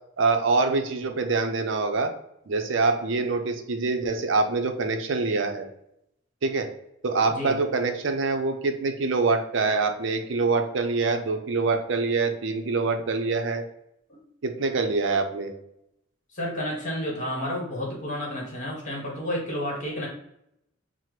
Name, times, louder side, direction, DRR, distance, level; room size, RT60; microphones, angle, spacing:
voice 1, 0.2-2.1 2.5-5.7 6.4-6.7 7.0-13.6 14.4-15.5, right 3 dB, 60° right, 6 dB, 0.5 m, -25 dB
voice 2, 7.2-7.6 14.1-14.2 16.3-20.1, left 1 dB, 35° left, -2 dB, 1.2 m, -31 dB
5.7 x 2.1 x 3.1 m, 0.78 s
head